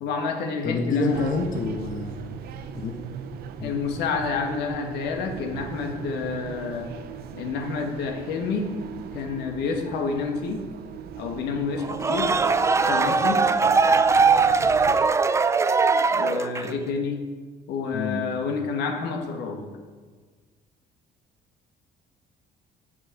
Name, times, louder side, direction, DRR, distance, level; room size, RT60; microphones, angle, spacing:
voice 1, 0.0-1.3 3.6-6.9 7.3-8.7 9.1-10.6 11.2-12.3 12.9-13.4 16.1-17.2 17.7-19.7, left 5 dB, 85° left, 3 dB, 1.5 m, -29 dB
voice 2, 0.6-2.4 2.7-3.0 3.6-3.7 16.6-16.8 17.9-18.2, left 3 dB, 55° left, 3 dB, 1.1 m, -28 dB
sound 1, 1.1-15.0, right 8 dB, 65° right, 0.7 m, -39 dB
sound 2, 11.8-16.8, right 4 dB, 15° right, 0.4 m, -20 dB
7.5 x 5.6 x 6.9 m, 1.5 s
cardioid pair, 110°, 17 cm